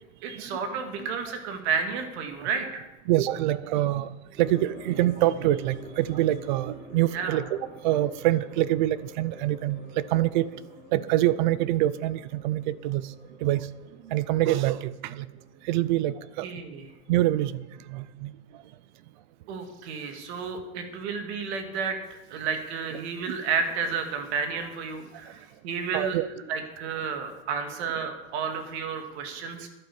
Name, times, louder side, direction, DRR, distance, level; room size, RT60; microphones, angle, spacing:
voice 1, 0.2-2.8 7.1-7.4 16.4-16.9 19.5-22.0 22.3-26.2 26.5-29.7, right 5 dB, 55° right, 6 dB, 2.2 m, -31 dB
voice 2, 3.1-4.1 4.4-7.6 7.8-10.5 10.9-13.0 13.4-13.7 14.1-15.3 15.6-16.5 17.1-17.6 17.9-18.3 25.9-26.3, right 14 dB, 40° right, 18 dB, 0.4 m, -25 dB
sound 1, 4.4-16.9 17.2-17.3 17.9-18.0, equal, 10° right, 4.2 m, -48 dB
11.0 x 9.5 x 7.1 m, 1.1 s
supercardioid pair, 165°, 38 cm